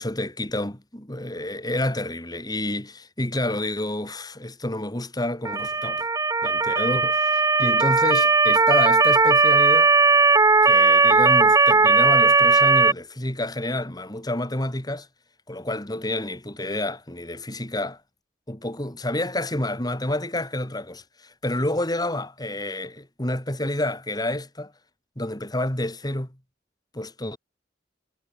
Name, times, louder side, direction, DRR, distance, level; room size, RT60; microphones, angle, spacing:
voice 1, 0.0-6.1 6.4-9.9 10.6-15.1 15.5-18.0 18.5-24.7 25.2-26.4 26.9-27.4, left 1 dB, 20° left, 3.4 m, -29 dB
Motor vehicle (road) / Siren, 5.5-12.9, right 4 dB, 20° right, 0.8 m, -18 dB
head